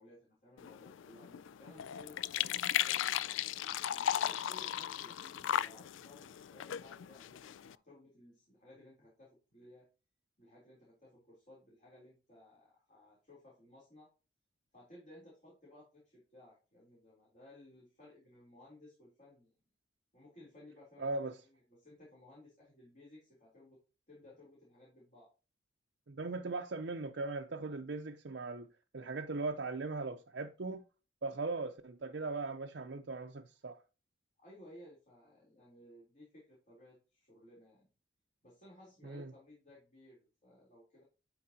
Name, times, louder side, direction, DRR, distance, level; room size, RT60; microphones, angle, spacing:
voice 1, 0.0-3.3 3.9-9.8 10.4-14.1 14.7-19.5 20.1-23.8 24.1-25.3 34.4-37.9 38.4-41.0, left 1 dB, 40° left, 3.4 m, -58 dB
sound 1, 0.6-7.8, left 10 dB, 85° left, 0.3 m, -36 dB
voice 2, 21.0-21.3 26.1-28.7 28.9-30.8 31.2-33.8 39.0-39.3, right 3 dB, 60° right, 0.6 m, -39 dB
11.5 x 4.7 x 2.8 m
head